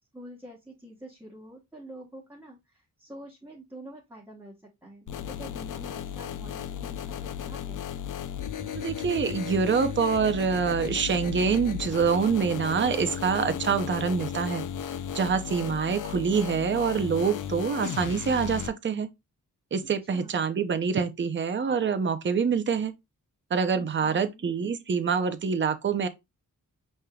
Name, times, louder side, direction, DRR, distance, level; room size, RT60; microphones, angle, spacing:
voice 1, 0.1-4.5 4.8-7.8 20.1-20.5 23.7-24.5, equal, 5° right, 1.1 m, -47 dB
sound 1, 5.1-18.7, left 9 dB, 60° left, 0.5 m, -35 dB
voice 2, 8.7-14.6 15.1-19.1 19.7-22.9 23.5-26.1, right 6 dB, 35° right, 0.6 m, -26 dB
5.3 x 3.2 x 2.3 m
cardioid pair, 80°, 35 cm